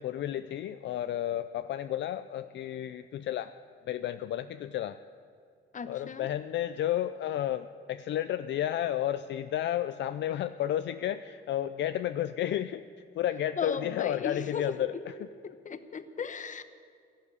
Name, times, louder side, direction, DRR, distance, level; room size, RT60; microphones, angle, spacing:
voice 1, 0.0-3.5 3.9-5.0 5.9-12.8 13.1-15.1 15.5-15.6, left 11 dB, 65° left, 11 dB, 0.5 m, -32 dB
voice 2, 5.7-6.3 13.6-14.7 15.4-16.6, left 6 dB, 40° left, 11 dB, 1.0 m, -36 dB
13.5 x 11.5 x 8.4 m, 2.2 s
cardioid pair, 90°, 20 cm